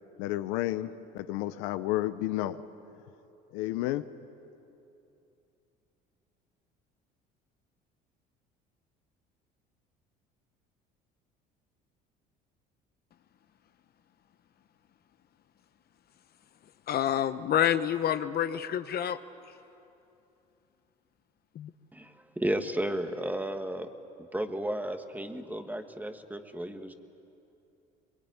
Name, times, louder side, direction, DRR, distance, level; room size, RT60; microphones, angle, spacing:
voice 1, 0.2-2.6 3.5-4.1, left 15 dB, 80° left, 12 dB, 0.8 m, -31 dB
voice 2, 16.9-19.2 21.5-21.7, left 10 dB, 50° left, 11 dB, 1.0 m, -28 dB
voice 3, 21.9-23.9 24.3-26.9, right 1 dB, 10° right, 7 dB, 1.8 m, -33 dB
23.0 x 22.0 x 9.7 m, 2.8 s
supercardioid pair, 75°, 20 cm